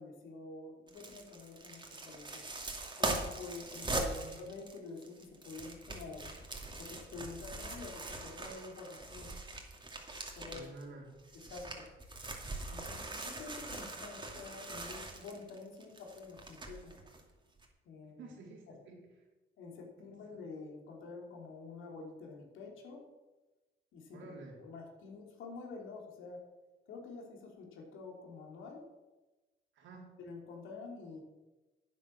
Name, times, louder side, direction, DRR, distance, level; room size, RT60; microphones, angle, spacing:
voice 1, 0.0-2.4 3.0-4.1 4.3-6.3 6.8-9.3 10.3-10.7 11.5-11.9 12.7-17.0 17.8-18.3 18.7-18.8 19.6-23.0 23.9-24.2 24.5-26.4 26.9-28.8 30.2-31.2, left 3 dB, 85° left, 1 dB, 3.0 m, -48 dB
sound 1, 0.9-10.8 11.2-17.2 17.6-17.7, right 2 dB, 25° right, 2.4 m, -41 dB
voice 2, 3.9-4.3 10.5-11.1 18.2-19.0 24.1-24.6 29.7-30.2, right 3 dB, 75° right, -1 dB, 3.8 m, -50 dB
10.5 x 9.1 x 6.5 m, 1.1 s
cardioid pair, 90°, 20 cm